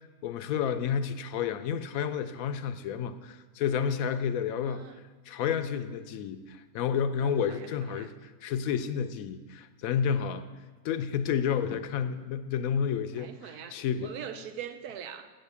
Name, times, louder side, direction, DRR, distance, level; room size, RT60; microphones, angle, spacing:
voice 1, 0.2-4.9 5.3-10.5 10.8-14.1, left 7 dB, 75° left, 10 dB, 1.0 m, -30 dB
voice 2, 4.7-5.0 7.2-8.1 13.1-15.3, right 8 dB, 90° right, 9 dB, 1.2 m, -43 dB
7.9 x 6.6 x 8.1 m, 1.3 s
omnidirectional pair, 1.6 m